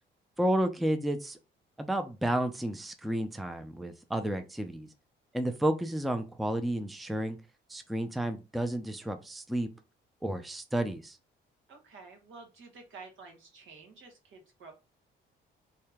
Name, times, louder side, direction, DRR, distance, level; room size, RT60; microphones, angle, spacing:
voice 1, 0.4-1.4 1.8-4.9 5.3-7.4 7.7-9.7 10.2-11.2, right 1 dB, ahead, 8 dB, 0.4 m, -31 dB
voice 2, 11.7-14.7, right 4 dB, 75° right, 2 dB, 1.4 m, -50 dB
3.2 x 2.8 x 3.4 m, 0.29 s
cardioid pair, 90°, 20 cm